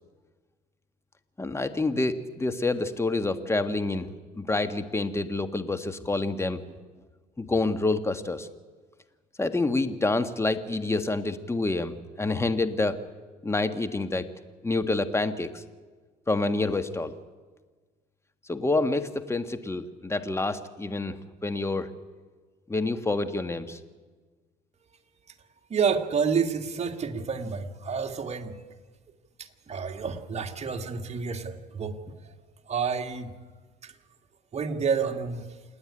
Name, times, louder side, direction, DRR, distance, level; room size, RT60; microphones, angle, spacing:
voice 1, 1.4-4.1 4.4-6.6 7.4-8.5 9.4-13.0 13.4-14.3 14.6-15.6 16.3-17.1 18.5-21.9 22.7-23.8, left 2 dB, 15° left, 9 dB, 1.6 m, -27 dB
voice 2, 25.7-28.6 29.4-32.0 32.3-32.4 32.7-33.3 33.8-33.9 34.5-35.5, right 6 dB, 40° right, 5 dB, 2.0 m, -29 dB
28.0 x 9.6 x 9.9 m, 1.4 s
supercardioid pair, 75°, 17 cm